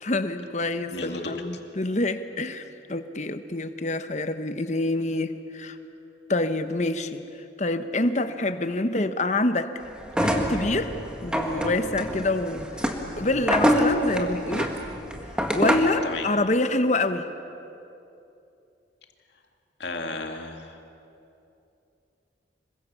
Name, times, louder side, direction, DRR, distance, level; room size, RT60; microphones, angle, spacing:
voice 1, 0.0-5.8 6.3-7.2 7.6-9.7 10.2-10.9 11.2-14.7 15.5-17.2, left 2 dB, 40° left, 9 dB, 1.0 m, -26 dB
voice 2, 0.9-1.4 16.0-16.3 19.8-20.8, left 3 dB, 70° left, 4 dB, 2.3 m, -33 dB
sound 1, 10.1-16.0, equal, 5° right, 1.8 m, -26 dB
26.5 x 23.0 x 7.0 m, 2.8 s
head